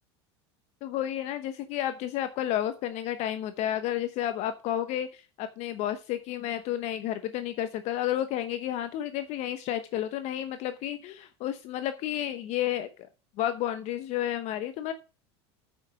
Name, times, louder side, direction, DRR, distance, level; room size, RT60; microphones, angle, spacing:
voice 1, 0.8-12.9 13.4-14.9, left 12 dB, 55° left, 10 dB, 1.0 m, -31 dB
8.7 x 5.9 x 5.9 m, 0.32 s
supercardioid pair, 105°, 14 cm